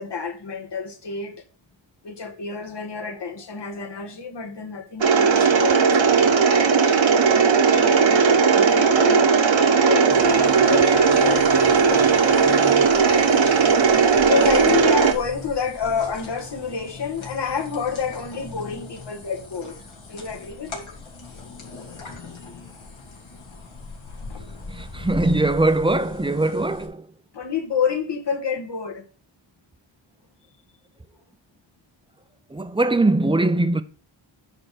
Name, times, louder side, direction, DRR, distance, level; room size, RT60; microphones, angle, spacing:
voice 1, 0.0-1.4 2.0-6.0 6.7-7.1 7.7-9.4 9.8-12.9 14.2-19.8 20.1-20.8 21.8-22.1 22.4-22.6 24.3-24.4 27.3-29.0, left 6 dB, 55° left, 1.7 m, -29 dB
Mechanisms, 5.0-15.1, right 5 dB, 65° right, 1.4 m, -17 dB
sound 1, 10.1-26.9, left 3 dB, 70° left, 2.6 m, -40 dB
voice 2, 24.7-27.1 32.5-33.8, right 2 dB, 10° right, 0.7 m, -21 dB
10.0 x 3.8 x 6.7 m
cardioid pair, 75°, 49 cm